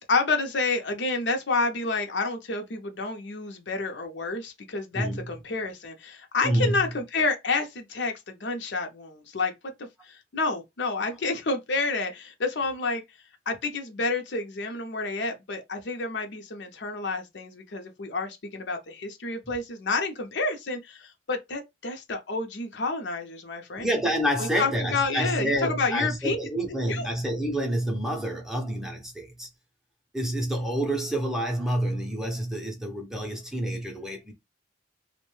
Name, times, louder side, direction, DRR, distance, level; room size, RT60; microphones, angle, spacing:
voice 1, 0.0-9.5 9.8-13.0 13.5-23.9 24.4-26.4 26.9-27.1, left 3 dB, 75° left, 0.6 m, -29 dB
voice 2, 4.9-5.4 6.4-6.9 23.8-29.5 30.1-34.3, equal, 5° right, 0.5 m, -28 dB
2.6 x 2.1 x 3.1 m
head